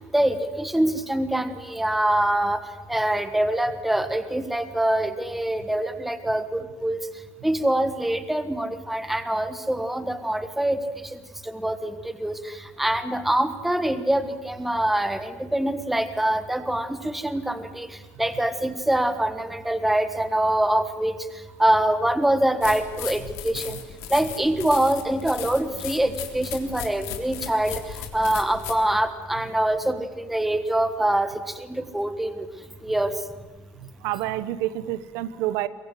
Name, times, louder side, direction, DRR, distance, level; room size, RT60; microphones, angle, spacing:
voice 1, 0.1-2.6 2.9-7.0 7.4-10.8 11.1-11.2 11.4-21.1 21.6-23.8 24.1-32.5 32.8-33.1, right 1 dB, 5° right, 10 dB, 1.4 m, -24 dB
sound 1, 22.6-28.8, left 11 dB, 85° left, 3.5 m, -36 dB
voice 2, 33.8-35.7, right 14 dB, 85° right, 15 dB, 1.2 m, -29 dB
22.5 x 22.5 x 9.4 m, 1.2 s
cardioid pair, 165°, 5 cm